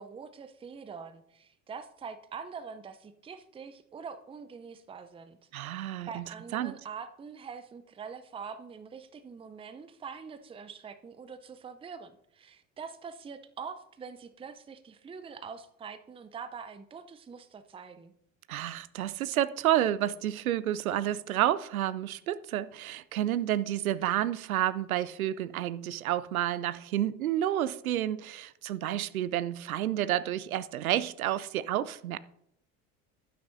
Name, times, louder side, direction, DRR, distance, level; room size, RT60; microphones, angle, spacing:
voice 1, 0.0-5.4 5.6-18.1, right 6 dB, 15° right, 0.6 m, -44 dB
voice 2, 5.5-6.7 18.5-32.2, right 12 dB, 85° right, 0.5 m, -30 dB
12.0 x 9.6 x 2.6 m
figure-of-eight pair, 65°, 42 cm